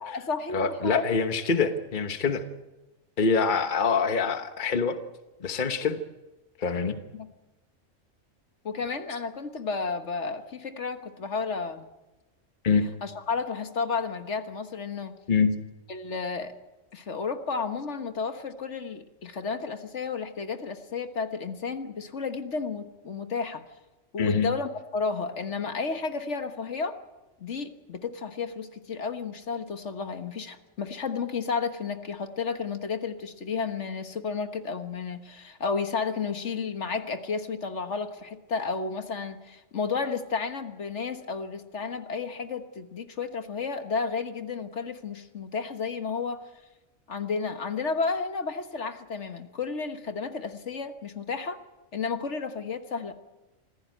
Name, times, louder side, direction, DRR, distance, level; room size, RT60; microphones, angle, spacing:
voice 1, 0.0-1.3 7.1-7.3 8.6-11.9 13.0-15.2 15.9-16.5 16.9-23.6 24.1-27.0 27.4-46.4 47.1-51.6 51.9-53.1, left 5 dB, 60° left, 8 dB, 1.6 m, -32 dB
voice 2, 0.5-2.4 3.2-5.0 5.4-6.0 6.6-7.0 12.6-12.9 15.3-15.5 24.2-24.5, left 5 dB, 40° left, 8 dB, 1.3 m, -25 dB
26.0 x 16.0 x 9.2 m, 1.1 s
omnidirectional pair, 1.4 m